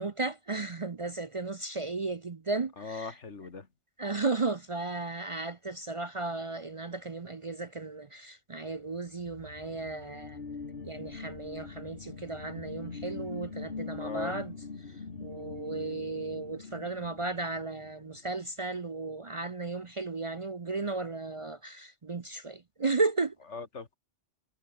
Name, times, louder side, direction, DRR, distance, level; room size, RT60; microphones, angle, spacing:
voice 1, 0.0-3.1 4.0-10.4 10.8-14.5 15.2-23.3, right 3 dB, 35° right, 0.6 m, -34 dB
voice 2, 2.8-3.7 14.0-14.5 23.5-24.0, left 4 dB, 80° left, 2.4 m, -40 dB
sound 1, 8.9-18.2, left 4 dB, 55° left, 1.9 m, -43 dB
omnidirectional pair, 1.2 m